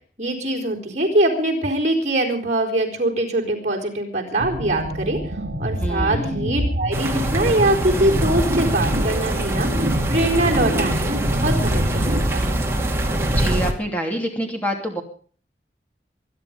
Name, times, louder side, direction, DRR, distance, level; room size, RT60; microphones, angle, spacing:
voice 1, 0.2-5.2 5.6-9.8 10.1-12.5, right 1 dB, 40° right, 1 dB, 4.3 m, -23 dB
sound 1, 4.4-12.2, equal, 75° right, 1.9 m, -28 dB
voice 2, 5.8-6.7 13.2-15.0, equal, 10° left, 2 dB, 2.9 m, -27 dB
sound 2, 6.9-13.7, right 1 dB, 15° right, 2.1 m, -23 dB
24.0 x 10.5 x 5.2 m, 0.43 s
head